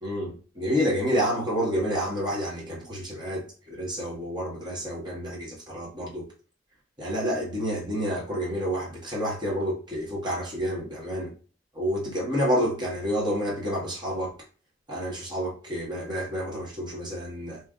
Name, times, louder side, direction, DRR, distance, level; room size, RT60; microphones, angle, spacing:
voice 1, 0.0-6.2 7.0-11.3 11.7-14.3 14.9-17.6, equal, 25° right, 1.6 m, -29 dB
3.3 x 3.1 x 3.7 m
head